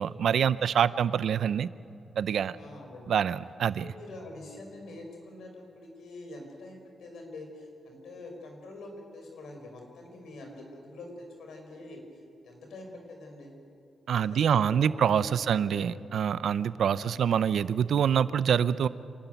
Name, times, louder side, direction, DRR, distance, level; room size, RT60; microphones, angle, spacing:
voice 1, 0.0-1.7 2.2-2.5 3.1-3.9 14.1-18.9, right 8 dB, 70° right, 16 dB, 0.6 m, -26 dB
voice 2, 2.6-3.2 3.6-12.0 12.4-13.6 14.1-16.3 16.9-17.3, left 2 dB, 85° left, 2 dB, 4.8 m, -45 dB
27.0 x 13.0 x 9.2 m, 2.6 s
wide cardioid pair, 135°, 0 cm